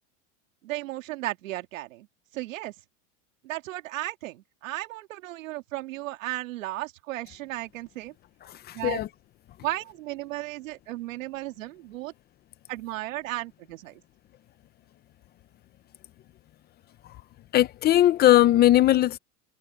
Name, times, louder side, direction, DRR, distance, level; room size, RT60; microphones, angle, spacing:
voice 1, 0.6-2.1 2.3-2.7 3.4-8.1 8.7-9.0 9.6-12.1 12.7-14.0, right 17 dB, 85° right, 2.7 m, -35 dB
voice 2, 8.5-9.1 17.5-19.2, left 14 dB, 25° left, 0.6 m, -19 dB
supercardioid pair, 150°, 38 cm